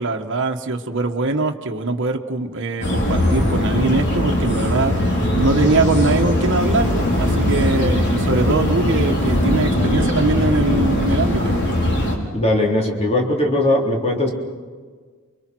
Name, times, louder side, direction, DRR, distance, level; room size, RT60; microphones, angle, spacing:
voice 1, 0.0-4.9 5.4-11.5, right 3 dB, 60° right, 4 dB, 1.4 m, -22 dB
sound 1, 2.8-12.2, left 1 dB, 55° left, 4.5 m, -20 dB
voice 2, 12.3-14.3, left 1 dB, 30° left, 0 dB, 3.8 m, -19 dB
29.0 x 24.0 x 6.2 m, 1.5 s
head